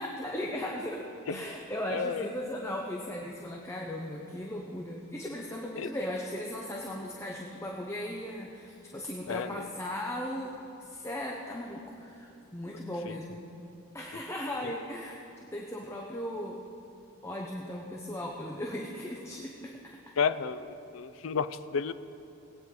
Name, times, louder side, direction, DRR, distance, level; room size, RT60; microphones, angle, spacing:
voice 1, 0.0-13.4 13.9-15.2 15.5-16.6 17.2-20.0, left 1 dB, 15° left, -1 dB, 0.8 m, -37 dB
voice 2, 1.9-2.2 5.8-5.9 9.3-9.7 13.1-13.2 14.6-14.7 20.2-21.9, left 6 dB, 70° left, 13 dB, 0.4 m, -32 dB
20.0 x 8.9 x 3.8 m, 2.7 s
head